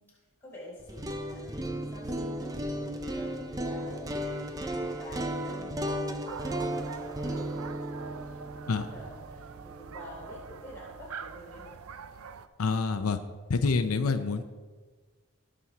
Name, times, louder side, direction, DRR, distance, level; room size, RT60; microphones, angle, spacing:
voice 1, 0.0-8.6 8.9-11.8, equal, 10° left, -7 dB, 4.0 m, -48 dB
sound 1, 0.8-10.8, right 1 dB, 15° right, 0.6 m, -35 dB
sound 2, 6.3-12.5, right 5 dB, 80° right, 0.5 m, -44 dB
voice 2, 12.6-13.2 13.5-14.4, left 4 dB, 85° left, 8 dB, 0.6 m, -27 dB
17.5 x 6.3 x 4.2 m, 1.4 s
head